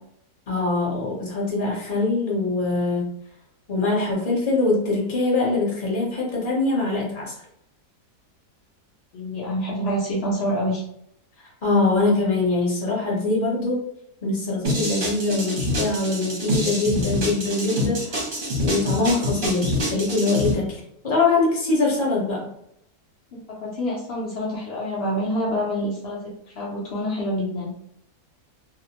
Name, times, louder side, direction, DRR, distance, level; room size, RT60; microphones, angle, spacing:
voice 1, 0.5-3.1 3.7-7.3 11.6-13.8 14.2-18.3 18.6-22.5, left 3 dB, 40° left, -4 dB, 0.9 m, -23 dB
voice 2, 9.1-10.8 23.3-27.7, equal, 70° left, -5 dB, 0.6 m, -27 dB
sound 1, 14.6-20.5, left 1 dB, 45° right, 0.8 m, -26 dB
2.7 x 2.0 x 2.8 m, 0.73 s
omnidirectional pair, 1.8 m